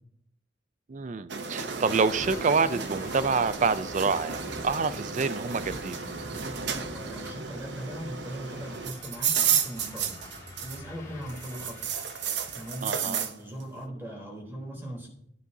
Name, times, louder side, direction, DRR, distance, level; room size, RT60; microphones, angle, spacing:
voice 1, 0.9-6.0 12.8-13.2, right 4 dB, 40° right, 0.4 m, -27 dB
sound 1, 1.3-11.0 11.3-13.3, right 7 dB, 60° right, 0.7 m, -32 dB
sound 2, 1.8-4.7 5.2-7.2, equal, 40° left, 1.3 m, -46 dB
sound 3, 1.9-12.9, left 2 dB, 20° left, 1.9 m, -47 dB
voice 2, 6.9-10.2 10.6-11.7 12.5-15.1, right 1 dB, 10° right, 3.4 m, -39 dB
14.5 x 9.5 x 2.7 m
head